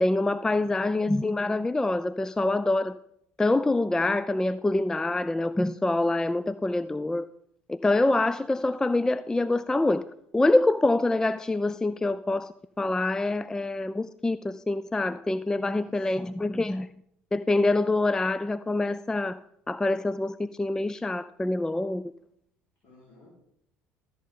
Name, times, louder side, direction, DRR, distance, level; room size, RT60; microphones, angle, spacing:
voice 1, 0.0-2.9 3.4-7.3 7.7-10.0 10.3-16.9 17.3-19.4 19.7-22.0, left 2 dB, 10° left, 0.3 m, -25 dB
voice 2, 15.7-16.4 22.8-23.3, left 2 dB, 45° left, 3.8 m, -54 dB
13.5 x 7.7 x 3.7 m
figure-of-eight pair, 60°, 7 cm